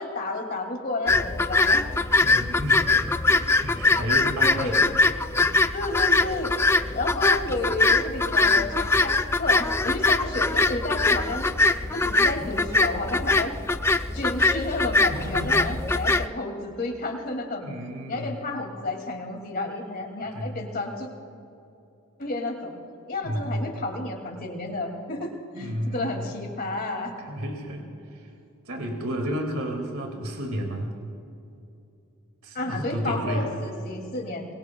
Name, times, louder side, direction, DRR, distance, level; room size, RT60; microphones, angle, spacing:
voice 1, 0.0-1.8 4.4-4.7 5.7-11.5 11.9-13.5 14.1-17.6 18.1-21.1 22.2-22.7 23.1-25.3 25.6-25.7 25.9-27.1 32.5-34.5, left 2 dB, 45° left, 2 dB, 2.5 m, -31 dB
sound 1, 1.1-16.3, left 3 dB, 10° left, 0.3 m, -22 dB
voice 2, 2.2-5.6 15.1-15.8 17.6-18.5 20.3-20.6 23.2-23.7 25.5-26.4 27.2-28.2 28.7-31.0 32.4-33.5, equal, 70° right, 2 dB, 2.3 m, -32 dB
25.0 x 22.5 x 2.3 m, 2.7 s
head